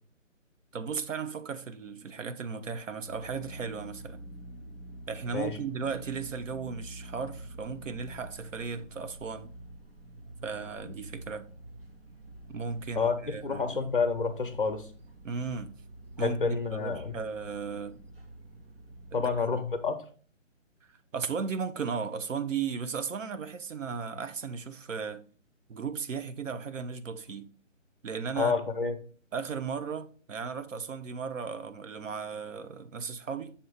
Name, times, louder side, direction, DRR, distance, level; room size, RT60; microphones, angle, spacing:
voice 1, 0.7-4.2 5.1-9.5 10.4-11.5 12.5-13.8 15.2-15.7 16.2-18.0 19.1-19.6 20.9-25.2 25.7-27.5 28.0-28.5 29.3-33.5, right 5 dB, 75° right, 0.7 m, -36 dB
sound 1, 3.1-19.4, right 1 dB, 50° right, 0.9 m, -47 dB
voice 2, 13.4-14.9 16.2-17.1 19.1-20.0 28.4-29.0, left 4 dB, 45° left, 0.8 m, -29 dB
6.9 x 2.9 x 4.8 m
hypercardioid pair, 180°, 38 cm